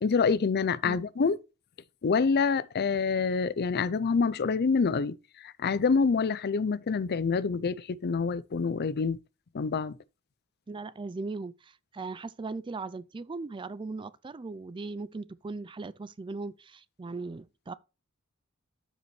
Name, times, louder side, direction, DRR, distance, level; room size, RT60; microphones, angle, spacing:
voice 1, 0.0-1.4 2.0-5.2 5.4-9.2 9.5-10.0, left 5 dB, 50° left, 0.5 m, -26 dB
voice 2, 10.7-17.7, right 3 dB, 25° right, 0.4 m, -38 dB
12.5 x 5.1 x 3.2 m
head